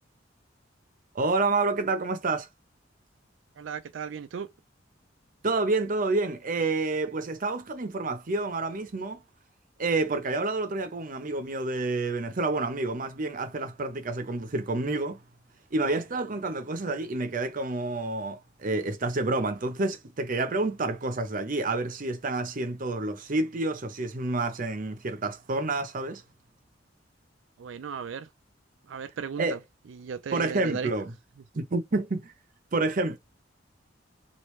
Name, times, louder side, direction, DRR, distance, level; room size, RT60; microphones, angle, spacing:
voice 1, 1.1-2.5 5.4-9.2 9.8-15.2 15.7-26.2 29.4-29.6 30.3-31.1 31.5-32.3 32.7-33.2, right 3 dB, 45° right, 0.7 m, -29 dB
voice 2, 3.6-4.5 27.6-28.3 28.9-29.6 29.9-30.9, right 6 dB, 90° right, 0.4 m, -36 dB
3.1 x 2.5 x 3.1 m
head